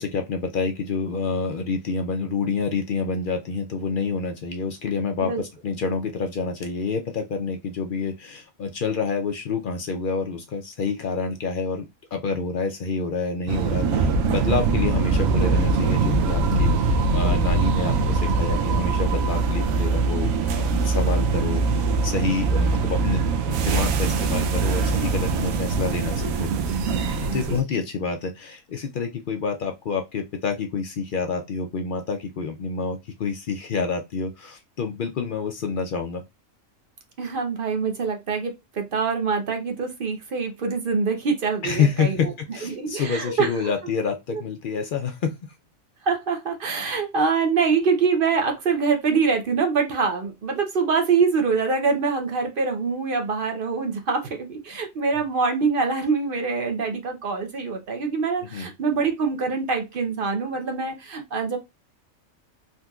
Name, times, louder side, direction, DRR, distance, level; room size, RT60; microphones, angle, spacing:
voice 1, 0.0-26.5 27.3-36.2 41.6-45.3 58.5-58.7, left 4 dB, 70° left, 4 dB, 0.5 m, -28 dB
sound 1, 13.5-27.6, right 4 dB, 85° right, 1.0 m, -22 dB
voice 2, 37.2-42.3 42.6-43.5 44.3-44.4 46.0-61.6, right 5 dB, 50° right, 4 dB, 0.8 m, -24 dB
3.8 x 2.7 x 2.3 m, 0.22 s
omnidirectional pair, 1.4 m